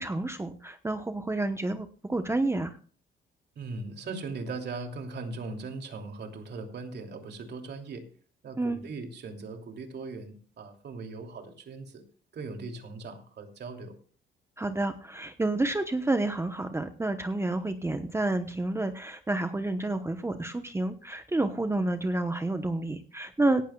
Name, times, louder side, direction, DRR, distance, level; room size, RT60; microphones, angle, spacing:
voice 1, 0.0-2.8 8.6-8.8 14.6-23.6, right 2 dB, 15° right, 7 dB, 1.0 m, -29 dB
voice 2, 3.6-8.0 8.4-12.0 12.3-14.0, right 3 dB, 60° right, 4 dB, 2.9 m, -39 dB
17.5 x 12.0 x 2.4 m, 0.42 s
cardioid pair, 90°, 20 cm